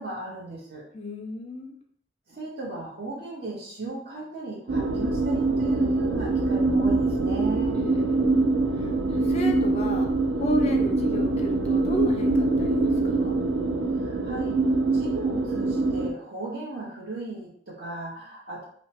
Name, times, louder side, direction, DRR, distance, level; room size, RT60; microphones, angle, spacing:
voice 1, 0.0-0.8 2.3-7.8 14.0-14.6 14.9-18.6, right 2 dB, 55° right, -4 dB, 0.9 m, -37 dB
voice 2, 0.9-1.8 7.7-13.4, left 2 dB, 35° left, 3 dB, 0.3 m, -33 dB
sound 1, 4.7-16.1, right 3 dB, 70° right, 0.3 m, -24 dB
2.8 x 2.1 x 2.8 m, 0.62 s
head